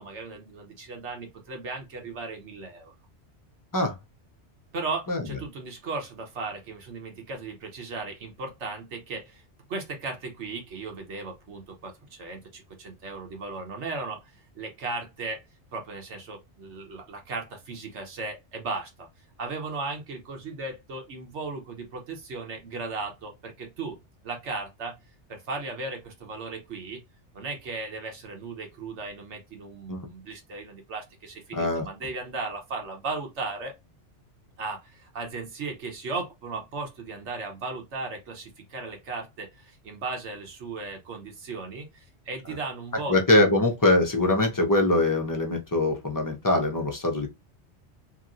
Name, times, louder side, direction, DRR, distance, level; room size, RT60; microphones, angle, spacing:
voice 1, 0.0-2.9 4.7-9.4 9.7-14.2 14.5-15.4 15.7-19.1 19.4-24.0 24.2-24.9 25.3-27.0 27.3-33.7 34.6-43.2, right 3 dB, 75° right, 1.2 m, -36 dB
voice 2, 31.5-31.9 43.1-47.3, left 2 dB, 20° left, 0.6 m, -23 dB
3.0 x 2.8 x 2.5 m
omnidirectional pair, 1.2 m